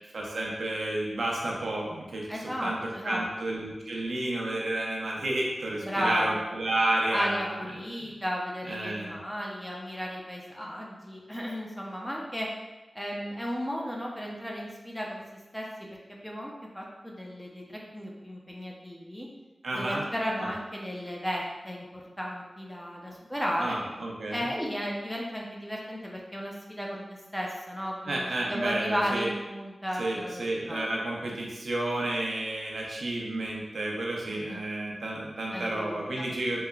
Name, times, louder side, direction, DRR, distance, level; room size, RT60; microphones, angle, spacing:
voice 1, 0.1-2.3 2.6-8.1 8.6-9.2 19.6-20.0 23.6-24.5 28.0-29.3 30.0-36.6, right 1 dB, 75° right, -3 dB, 0.5 m, -31 dB
voice 2, 2.3-3.3 5.8-6.5 7.1-12.5 12.9-15.2 15.5-15.7 16.1-19.3 19.7-23.8 24.3-30.9 34.3-34.6 35.5-36.3, equal, 5° left, -2 dB, 0.5 m, -34 dB
3.0 x 2.1 x 2.3 m, 1.1 s
wide cardioid pair, 75°, 0 cm